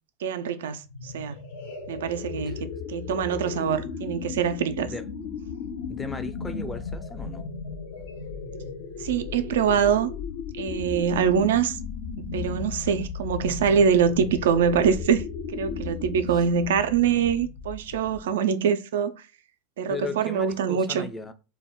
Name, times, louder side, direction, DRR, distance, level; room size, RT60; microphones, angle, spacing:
voice 1, 0.2-1.4 1.9-4.9 9.0-10.1 10.6-11.8 12.3-15.2 15.5-19.1 19.8-21.1, right 7 dB, 70° right, 0.3 m, -24 dB
sound 1, 0.8-18.4, left 5 dB, 65° left, 0.7 m, -36 dB
voice 2, 5.9-7.5 19.9-21.3, left 4 dB, 15° left, 0.4 m, -36 dB
2.2 x 2.0 x 3.4 m
hypercardioid pair, 90°, 0 cm